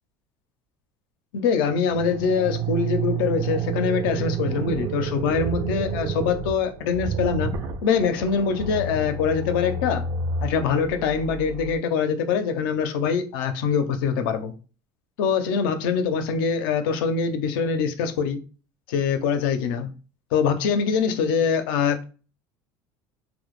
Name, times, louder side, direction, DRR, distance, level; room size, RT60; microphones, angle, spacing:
voice 1, 1.3-7.5 7.8-10.0 10.4-14.5 15.2-18.4 18.9-19.9 20.3-22.0, left 6 dB, 90° left, 0.5 m, -24 dB
sound 1, 1.9-11.8, right 5 dB, 40° right, 0.3 m, -30 dB
2.1 x 2.0 x 3.0 m
supercardioid pair, 120°, 11 cm